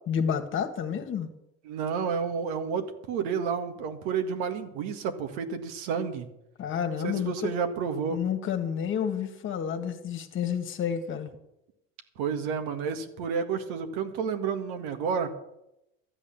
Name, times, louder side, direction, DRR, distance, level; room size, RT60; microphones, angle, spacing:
voice 1, 0.1-1.3 6.6-7.5 8.1-11.3, left 8 dB, 45° left, 8 dB, 1.7 m, -30 dB
voice 2, 1.6-6.3 7.0-8.2 12.2-15.3, right 6 dB, 70° right, 7 dB, 1.9 m, -30 dB
13.0 x 8.5 x 7.1 m, 0.86 s
supercardioid pair, 95°, 29 cm